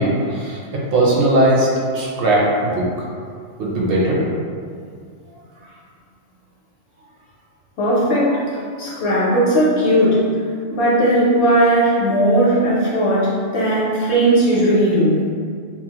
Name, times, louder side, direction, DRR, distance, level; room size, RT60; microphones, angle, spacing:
voice 1, 0.0-2.9 3.6-4.2, right 1 dB, 60° right, -4 dB, 0.6 m, -18 dB
voice 2, 7.8-10.2 10.7-15.2, right 1 dB, 65° left, -7 dB, 0.9 m, -17 dB
2.9 x 2.0 x 2.8 m, 2.2 s
omnidirectional pair, 1.3 m